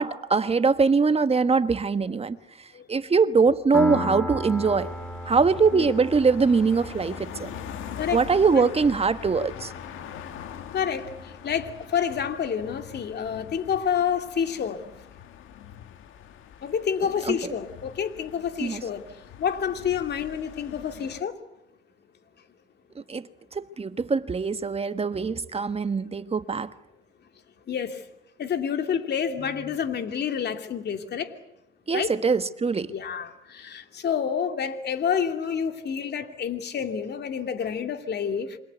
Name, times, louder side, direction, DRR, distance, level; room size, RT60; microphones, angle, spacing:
voice 1, 0.0-2.4 2.9-4.9 5.2-7.5 8.1-9.7 17.2-17.5 18.6-18.8 22.9-26.7 31.9-32.9, right 4 dB, 30° right, 1.4 m, -23 dB
Piano, 3.7-11.1, left 1 dB, 5° left, 3.2 m, -36 dB
sound 1, 4.5-21.2, left 9 dB, 85° left, 2.0 m, -43 dB
voice 2, 10.7-14.8 16.6-19.0 19.4-21.3 27.7-28.0 28.4-31.3 31.9-32.1 32.9-38.6, left 7 dB, 55° left, 2.7 m, -28 dB
28.0 x 24.5 x 8.3 m
cardioid pair, 90°, 20 cm